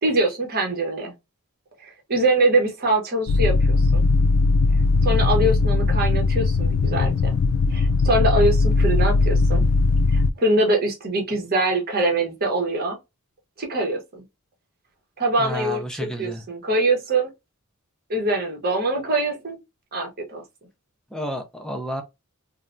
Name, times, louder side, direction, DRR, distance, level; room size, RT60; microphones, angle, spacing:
voice 1, 0.0-1.1 1.8-4.0 5.0-7.4 7.7-9.6 10.1-13.0 13.6-14.2 15.2-17.3 18.1-19.6 19.9-20.4, right 2 dB, 45° right, 1.0 m, -23 dB
sound 1, 3.3-10.3, left 3 dB, 85° left, 0.3 m, -19 dB
voice 2, 15.4-16.4 21.1-22.0, equal, 5° left, 0.5 m, -31 dB
3.2 x 2.2 x 2.5 m
head